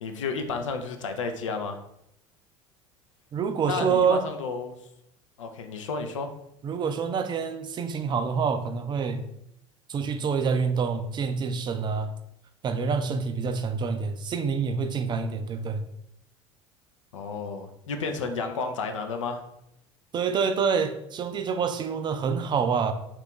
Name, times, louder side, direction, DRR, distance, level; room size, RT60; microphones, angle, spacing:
voice 1, 0.0-1.8 3.7-4.8 5.4-6.3 17.1-19.4, left 4 dB, 80° left, 5 dB, 0.4 m, -32 dB
voice 2, 3.3-4.2 6.6-9.3 9.9-12.1 12.6-15.9 20.1-22.9, right 5 dB, 30° right, 8 dB, 0.3 m, -27 dB
3.0 x 2.4 x 3.5 m, 0.79 s
figure-of-eight pair, 65°, 16 cm